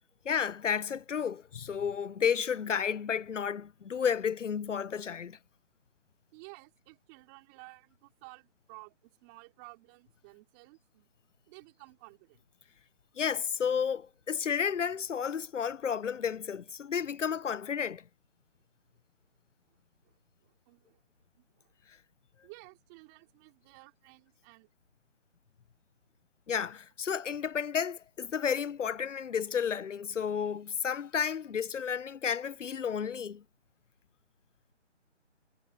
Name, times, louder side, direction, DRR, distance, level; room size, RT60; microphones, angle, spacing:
voice 1, 0.2-5.4 13.2-18.0 26.5-33.4, left 7 dB, 90° left, 0.7 m, -32 dB
voice 2, 6.3-11.1 11.5-12.5 20.0-20.1 20.4-21.0 21.4-21.7 22.4-24.7, right 31 dB, 15° right, 4.6 m, -54 dB
figure-of-eight pair, 165°, 36 cm